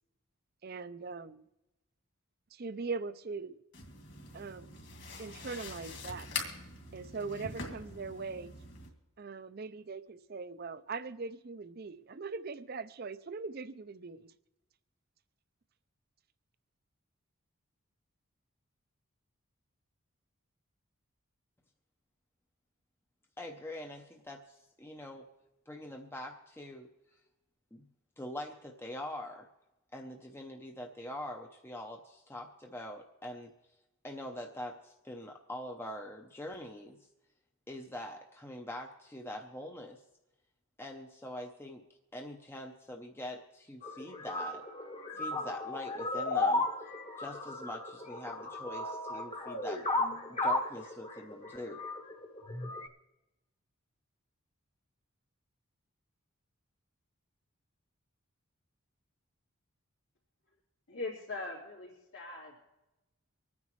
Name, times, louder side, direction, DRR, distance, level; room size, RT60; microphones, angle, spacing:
voice 1, 0.6-1.4 2.5-3.6 4.3-4.8 5.2-6.3 6.9-8.5 9.2-14.3, right 4 dB, 45° right, 13 dB, 0.5 m, -41 dB
sound 1, 3.7-8.9, left 4 dB, 50° left, 2.4 m, -43 dB
voice 2, 23.4-25.3 25.7-26.9 27.7-27.8 28.2-29.5 29.9-33.5 34.0-37.0 37.7-40.0 40.8-41.8 42.1-44.7 45.2-46.7 47.2-49.9 50.4-51.8, left 1 dB, 10° left, 2 dB, 0.6 m, -44 dB
sound 2, 43.8-52.9, left 2 dB, 25° left, 1.0 m, -35 dB
voice 3, 60.9-62.6, left 3 dB, 85° left, -7 dB, 3.4 m, -41 dB
25.0 x 9.6 x 3.1 m, 1.0 s
head